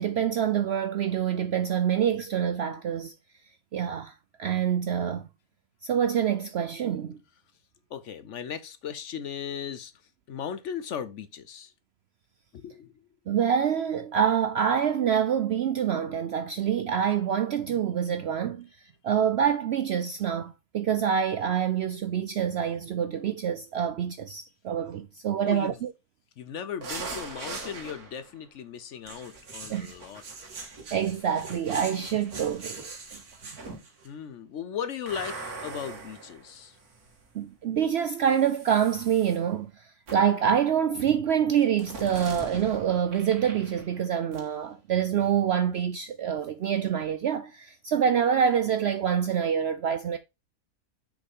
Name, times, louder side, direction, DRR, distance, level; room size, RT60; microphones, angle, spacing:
voice 1, 0.0-3.1 3.7-4.1 4.4-5.3 5.8-7.2 13.3-18.7 19.0-25.9 29.7-29.9 30.9-33.2 37.3-50.2, right 8 dB, 70° right, 0.6 m, -26 dB
voice 2, 7.9-11.7 12.5-13.1 25.4-25.8 26.4-30.2 34.0-36.8, left 8 dB, 60° left, 0.9 m, -37 dB
sound 1, 26.8-28.3 29.1-34.1 35.1-37.2 38.2-39.4 40.1-40.4 41.8-44.1 44.3-44.5, right 3 dB, 85° right, 2.2 m, -41 dB
6.5 x 5.1 x 3.6 m
omnidirectional pair, 1.6 m